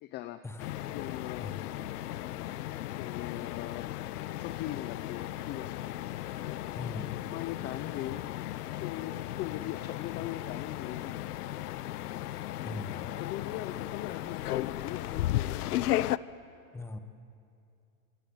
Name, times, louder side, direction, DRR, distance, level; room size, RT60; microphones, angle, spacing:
voice 1, 0.0-0.4 0.9-1.5 3.0-3.9 4.3-5.9 6.4-6.6 7.2-8.2 8.8-11.2 12.6-12.8 13.2-15.7, left 13 dB, 25° left, 12 dB, 0.5 m, -40 dB
sound 1, 0.6-16.2, left 14 dB, 85° left, 0.8 m, -35 dB
voice 2, 1.4-1.8 6.7-7.2 12.6-13.2 16.7-17.0, left 3 dB, 5° left, 10 dB, 1.0 m, -40 dB
27.0 x 25.0 x 7.9 m, 2.5 s
supercardioid pair, 140°, 44 cm